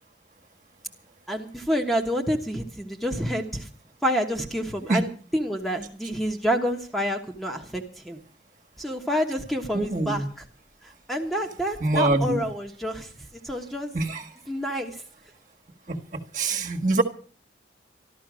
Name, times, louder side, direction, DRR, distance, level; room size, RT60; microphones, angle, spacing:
voice 1, 1.3-3.7 4.0-8.2 8.8-10.4 11.1-13.1 13.4-13.9 14.5-15.0, equal, ahead, 3 dB, 1.3 m, -28 dB
voice 2, 9.7-10.3 11.8-12.4 13.9-14.2 15.9-16.0 16.3-17.0, right 2 dB, 45° right, 3 dB, 1.7 m, -24 dB
13.5 x 13.0 x 6.2 m, 0.40 s
head